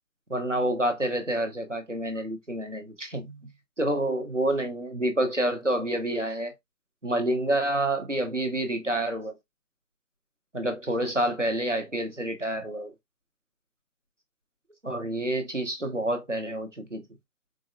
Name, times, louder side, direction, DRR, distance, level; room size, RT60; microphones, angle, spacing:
voice 1, 0.3-3.4 3.8-6.5 7.0-9.3 10.5-12.9 14.8-17.0, right 1 dB, 50° right, 0.6 m, -28 dB
3.9 x 2.0 x 2.4 m
figure-of-eight pair, 175°, 50 cm